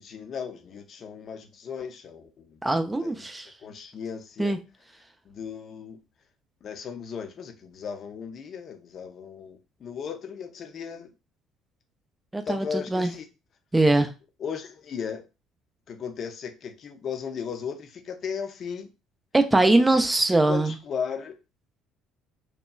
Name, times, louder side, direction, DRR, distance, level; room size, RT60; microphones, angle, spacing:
voice 1, 0.0-2.6 3.0-3.2 3.6-4.6 5.2-6.0 6.6-11.1 12.5-13.2 14.4-15.2 15.9-18.9 19.8-20.0 20.5-21.4, left 6 dB, 45° left, 0.5 m, -36 dB
voice 2, 2.6-3.5 4.4-4.6 12.3-13.1 13.7-14.1 19.3-20.7, right 2 dB, 15° right, 0.3 m, -22 dB
2.8 x 2.2 x 2.3 m
figure-of-eight pair, 55°, 0 cm